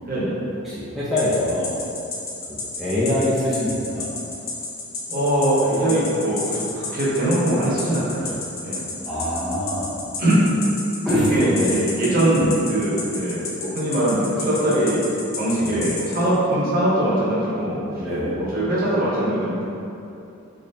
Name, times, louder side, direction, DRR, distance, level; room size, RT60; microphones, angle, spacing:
voice 1, 0.6-1.7 2.5-4.1 9.0-9.9 11.0-11.7 12.4-12.5 15.6-15.8 18.0-18.5, left 1 dB, ahead, -11 dB, 0.5 m, -24 dB
sound 1, 1.2-16.2, left 4 dB, 65° left, 0.6 m, -31 dB
voice 2, 5.1-8.8 10.2-10.6 11.3-15.0 15.4-18.0 18.3-19.6, right 1 dB, 45° right, -8 dB, 1.0 m, -22 dB
3.9 x 3.0 x 2.7 m, 2.8 s
head